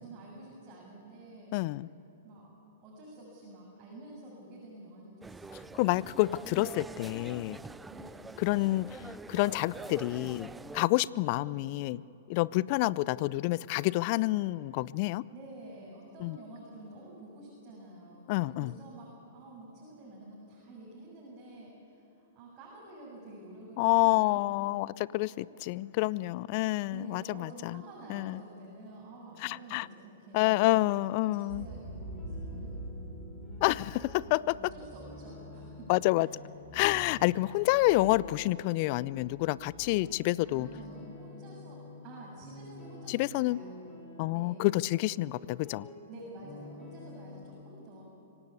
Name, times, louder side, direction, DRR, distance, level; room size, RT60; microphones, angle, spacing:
voice 1, 0.0-1.5 2.2-2.5 2.8-6.0 7.9-8.3 11.2-11.3 15.3-24.4 26.9-32.9 34.2-36.5 40.4-43.8 44.3-44.7 46.1-48.0, right 2 dB, 35° right, -5 dB, 6.8 m, -49 dB
voice 2, 1.5-1.9 5.7-7.6 8.4-12.0 12.3-15.2 16.2-16.4 18.3-18.7 23.8-27.8 28.1-28.4 29.4-29.9 30.3-31.6 33.6-34.6 35.9-36.3 36.7-40.7 43.1-43.6 44.2-45.9, left 19 dB, 45° left, 21 dB, 0.5 m, -28 dB
sound 1, 5.2-10.9, right 3 dB, 10° right, 0.4 m, -45 dB
Boom, 31.4-35.7, right 2 dB, 80° right, 5.9 m, -43 dB
sound 2, 31.5-47.4, left 2 dB, 15° left, 4.6 m, -49 dB
25.0 x 17.5 x 8.3 m, 2.9 s
hypercardioid pair, 110°, 0 cm